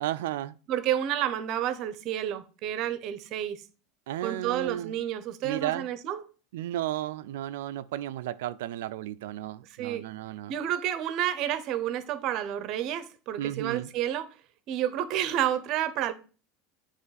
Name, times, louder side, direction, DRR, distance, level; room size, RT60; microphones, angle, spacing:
voice 1, 0.0-0.6 4.1-5.0 5.4-5.9 6.5-10.5 13.4-13.9, right 13 dB, 85° right, 0.3 m, -33 dB
voice 2, 0.7-3.6 4.2-6.2 9.8-10.0 10.5-14.3 14.7-16.1, right 11 dB, 50° right, 0.6 m, -30 dB
7.8 x 3.0 x 4.0 m
supercardioid pair, 125°, 0 cm